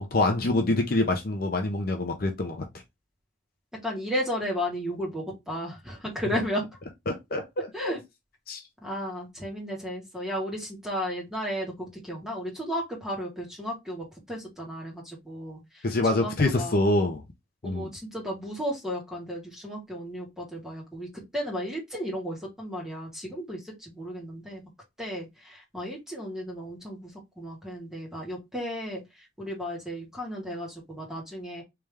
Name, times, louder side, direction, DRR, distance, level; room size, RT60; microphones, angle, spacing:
voice 1, 0.0-2.6 7.1-7.9 8.5-8.6 15.8-17.2 17.6-17.9, left 2 dB, 50° left, 0.7 m, -26 dB
voice 2, 3.8-6.6 7.7-8.0 8.8-15.8 16.1-16.8 17.6-21.1 21.3-24.6 25.0-27.1 27.4-29.0 29.4-31.6, equal, 5° right, 1.7 m, -34 dB
3.5 x 3.2 x 3.3 m
head